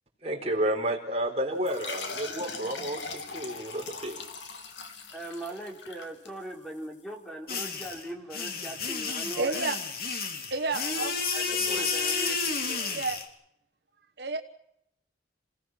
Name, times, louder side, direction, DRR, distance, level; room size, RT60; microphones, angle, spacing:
voice 1, 0.2-4.2 11.6-11.8, right 1 dB, 35° right, 2 dB, 4.1 m, -31 dB
sound 1, 1.6-6.8, left 4 dB, 85° left, 2.9 m, -40 dB
voice 2, 5.1-9.7 10.8-13.0, right 1 dB, ahead, 2 dB, 3.5 m, -40 dB
sound 2, 7.5-13.2, left 5 dB, 55° left, 2.7 m, -31 dB
voice 3, 9.4-9.8 10.5-11.1 12.9-13.2 14.2-14.4, right 3 dB, 65° right, 6 dB, 1.2 m, -30 dB
27.5 x 17.5 x 6.2 m, 0.77 s
head